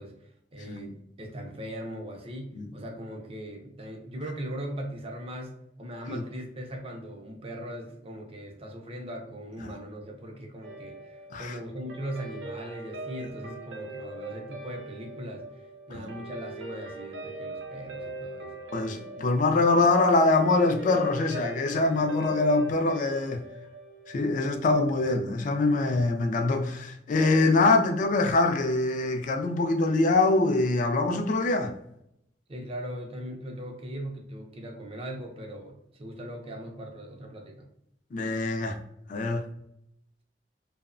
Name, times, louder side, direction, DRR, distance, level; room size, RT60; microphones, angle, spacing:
voice 1, 0.0-18.6 32.5-37.7, equal, 35° right, 0.5 m, -39 dB
Guitar, 10.6-25.2, right 2 dB, 90° right, 0.6 m, -42 dB
voice 2, 18.7-23.4 24.1-31.7 38.1-38.8 39.1-39.4, left 3 dB, 45° left, 0.3 m, -24 dB
2.8 x 2.0 x 2.4 m
head